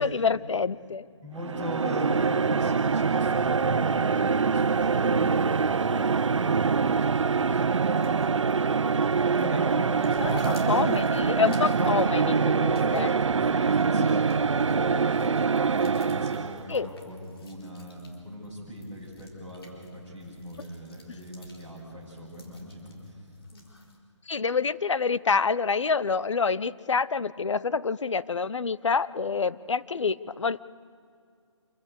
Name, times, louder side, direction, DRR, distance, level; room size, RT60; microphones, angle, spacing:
voice 1, 0.0-1.1 10.2-13.1 13.9-14.2 16.7-16.9 21.1-21.2 24.3-30.6, left 5 dB, 70° left, 18 dB, 0.7 m, -27 dB
voice 2, 1.2-8.9 9.4-11.0 11.8-23.2, equal, 10° left, -7 dB, 6.1 m, -38 dB
sound 1, 1.4-16.7, right 5 dB, 75° right, 0.6 m, -24 dB
sound 2, 7.9-24.0, left 2 dB, 50° left, 4.1 m, -54 dB
26.5 x 16.0 x 8.3 m, 2.4 s
figure-of-eight pair, 165°, 16 cm